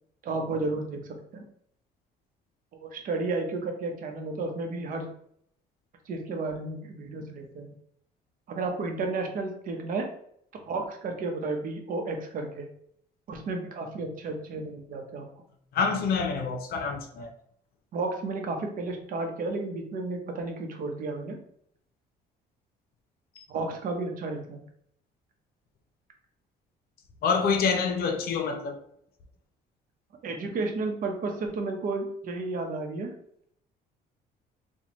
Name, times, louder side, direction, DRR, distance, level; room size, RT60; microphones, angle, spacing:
voice 1, 0.2-1.4 2.8-5.1 6.1-7.7 8.5-10.1 10.5-12.7 13.3-15.3 17.9-21.4 23.5-24.6 30.2-33.1, right 3 dB, 55° right, 0.8 m, -32 dB
voice 2, 15.7-17.3 23.4-23.5 27.2-28.8, left 5 dB, 65° left, 0.7 m, -27 dB
4.2 x 2.3 x 3.0 m
cardioid pair, 110°, 17 cm